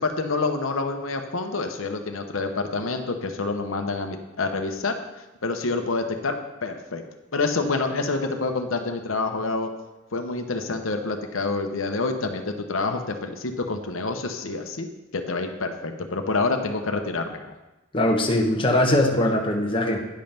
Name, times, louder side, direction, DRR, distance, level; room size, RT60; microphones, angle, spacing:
voice 1, 0.0-5.0 5.4-6.3 6.6-7.0 7.3-9.7 10.1-14.9 15.1-17.5, left 3 dB, 85° left, 5 dB, 0.9 m, -27 dB
voice 2, 17.9-20.1, left 1 dB, 25° left, 1 dB, 1.0 m, -21 dB
10.0 x 5.3 x 5.8 m, 1.0 s
head